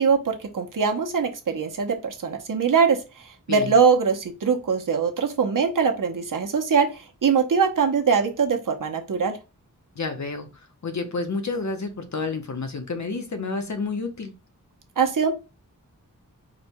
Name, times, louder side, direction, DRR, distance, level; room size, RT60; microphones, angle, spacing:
voice 1, 0.0-9.4 15.0-15.3, right 6 dB, 70° right, 3 dB, 0.9 m, -22 dB
voice 2, 10.0-10.5 10.8-14.3, left 3 dB, 55° left, 6 dB, 0.9 m, -30 dB
4.9 x 2.3 x 4.4 m, 0.28 s
wide cardioid pair, 90°, 33 cm